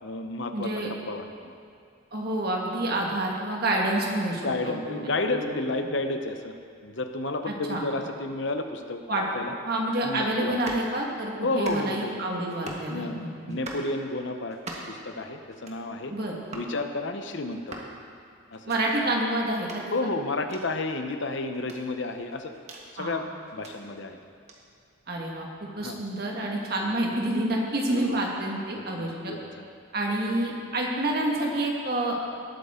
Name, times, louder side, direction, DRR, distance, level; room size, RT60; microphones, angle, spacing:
voice 1, 0.0-1.6 4.3-6.6 6.8-9.5 10.0-10.5 11.4-12.1 12.9-14.6 14.9-16.1 16.5-17.9 18.5-18.7 19.9-22.5 22.9-24.2 25.8-26.0 27.9-28.2 29.0-29.6, left 2 dB, 60° left, 6 dB, 0.8 m, -31 dB
voice 2, 0.5-0.9 2.1-5.0 5.3-5.5 7.5-7.8 9.1-9.2 9.6-13.3 16.1-16.3 18.7-19.8 23.0-23.2 25.1-29.3 29.9-32.2, right 1 dB, 50° right, -1 dB, 1.8 m, -28 dB
sound 1, 10.5-10.9 11.5-12.1 12.5-12.9 13.5-13.9 14.5-15.0 15.5-15.8 16.5-16.7 17.5-17.9 18.5-18.8 19.5-19.8 20.5-20.6 21.5-22.8 23.5-23.7 24.5-24.6, right 2 dB, 30° right, 1.3 m, -41 dB
19.0 x 8.6 x 3.8 m, 2.3 s
head